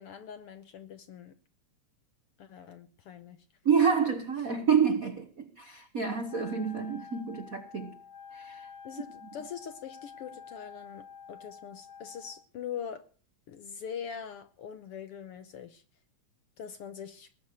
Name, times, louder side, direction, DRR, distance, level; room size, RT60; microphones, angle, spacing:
voice 1, 0.0-1.3 2.4-3.4 8.8-13.1 13.5-15.8 16.6-17.3, left 8 dB, 65° left, 1.5 m, -42 dB
voice 2, 3.6-7.9 8.3-8.6, right 6 dB, 65° right, 0.8 m, -28 dB
Wind instrument woodwind instrument, 6.3-12.4, left 7 dB, 40° left, 1.6 m, -49 dB
19.5 x 6.5 x 9.2 m
omnidirectional pair, 3.4 m